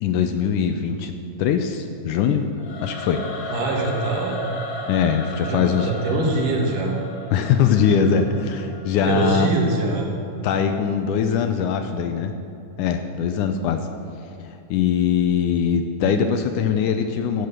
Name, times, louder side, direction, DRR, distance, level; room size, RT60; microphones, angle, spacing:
voice 1, 0.0-1.1 1.4-2.4 2.8-3.2 4.9-5.9 7.3-9.5 10.4-12.3 12.8-13.9 14.7-17.5, left 7 dB, 80° left, 7 dB, 1.9 m, -21 dB
Singing / Musical instrument, 2.6-9.7, left 1 dB, 55° left, 2.1 m, -35 dB
voice 2, 3.5-4.4 5.4-7.0 9.1-10.1, right 2 dB, 70° right, 0 dB, 3.0 m, -23 dB
12.5 x 7.9 x 6.5 m, 2.6 s
omnidirectional pair, 3.9 m